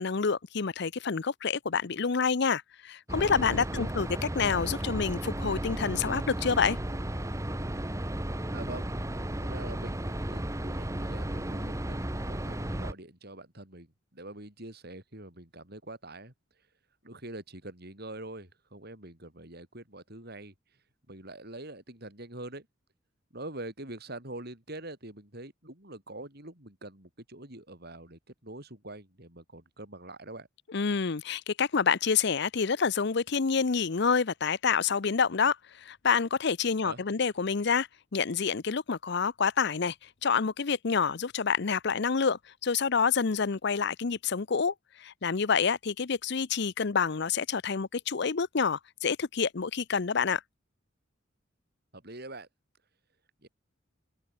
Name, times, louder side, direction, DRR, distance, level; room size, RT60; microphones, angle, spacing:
voice 1, 0.0-4.1 4.4-6.8 30.7-39.9 40.2-44.7 45.0-50.4, left 5 dB, 60° left, 0.7 m, -28 dB
sound 1, 3.1-12.9, right 1 dB, 15° right, 1.3 m, -34 dB
voice 2, 8.5-8.9 9.4-16.3 17.0-20.5 21.1-22.7 23.3-30.5 36.8-37.0 51.9-52.5 53.4-53.5, right 2 dB, 55° right, 6.9 m, -44 dB
head